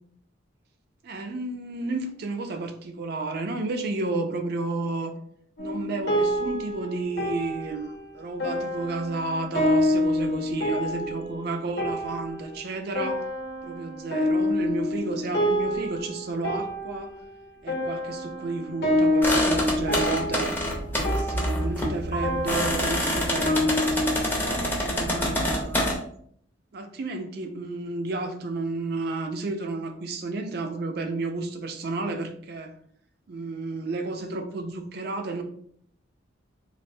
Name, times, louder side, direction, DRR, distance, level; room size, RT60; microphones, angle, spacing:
voice 1, 1.0-5.1 5.6-13.2 13.6-17.1 17.6-20.6 20.8-24.1 24.8-25.9 26.7-32.7 33.3-35.4, right 3 dB, 50° right, 5 dB, 0.4 m, -32 dB
sound 1, 5.6-24.2, left 1 dB, 55° left, 0.8 m, -28 dB
sound 2, 19.2-25.9, left 1 dB, 10° left, 0.5 m, -26 dB
3.2 x 2.5 x 2.6 m, 0.65 s
head